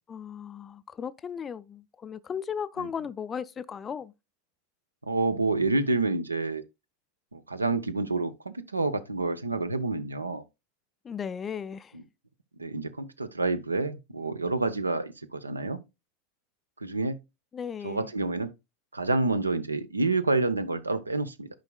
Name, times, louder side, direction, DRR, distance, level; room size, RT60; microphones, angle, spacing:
voice 1, 0.1-4.1 11.0-12.0 17.5-18.1, left 7 dB, 25° left, 0.4 m, -36 dB
voice 2, 5.0-6.6 7.3-10.4 12.6-15.8 16.8-17.2 17.8-18.5 18.9-21.5, right 3 dB, 85° right, 0.6 m, -28 dB
10.5 x 4.8 x 2.2 m
figure-of-eight pair, 85°, 0 cm